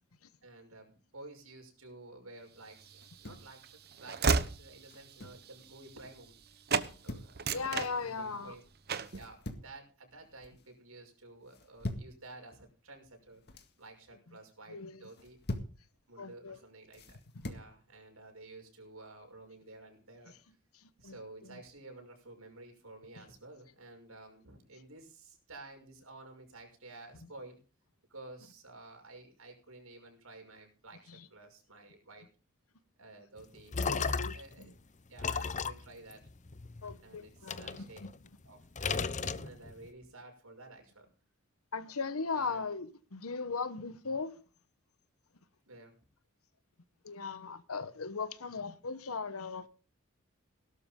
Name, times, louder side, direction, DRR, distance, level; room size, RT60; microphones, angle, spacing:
voice 1, 0.4-6.3 7.0-8.6 9.1-13.4 13.8-15.4 16.1-20.6 21.0-27.6 28.1-32.3 33.0-34.7 35.1-36.3 37.0-38.0 38.4-41.1 42.3-42.7 45.7-45.9, right 2 dB, 80° right, 6.0 m, -52 dB
Train / Slam, 2.8-6.4 6.7-6.9 7.3-8.5 8.9-9.2, right 5 dB, 50° right, 1.0 m, -33 dB
sound 1, 2.9-3.5 4.8-5.5 6.7-7.3 9.0-9.8 10.2-10.6 11.5-12.2 13.2-13.7 15.0-15.8 16.9-17.7, left 1 dB, 50° left, 2.0 m, -43 dB
voice 2, 7.5-8.6 14.7-15.0 16.2-16.6 17.3-17.5 20.8-21.2 21.4-21.6 31.1-31.3 33.8-34.7 36.8-38.1 41.7-44.4 47.0-49.7, left 4 dB, 90° left, 1.1 m, -38 dB
sound 2, 33.4-34.6 35.2-36.9 37.5-38.5 38.8-39.9, left 5 dB, 35° left, 0.7 m, -35 dB
17.5 x 12.5 x 3.8 m
head